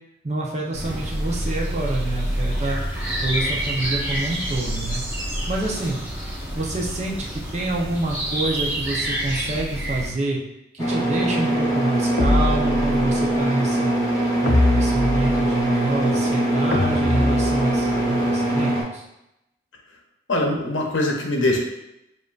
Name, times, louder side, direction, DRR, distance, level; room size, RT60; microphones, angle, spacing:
voice 1, 0.2-2.8 3.2-5.0 5.5-6.0 6.5-10.4 10.7-14.0 14.4-19.0, right 2 dB, 35° right, -2 dB, 0.7 m, -27 dB
sound 1, 0.7-10.1, right 1 dB, 10° right, 1.0 m, -27 dB
sound 2, 10.8-18.8, right 1 dB, 15° left, 0.9 m, -22 dB
sound 3, 12.2-13.3 14.5-15.7 16.7-18.0, left 1 dB, 55° left, 0.5 m, -23 dB
voice 2, 20.3-21.6, left 2 dB, 85° left, 1 dB, 0.9 m, -22 dB
7.1 x 2.6 x 2.4 m, 0.87 s
head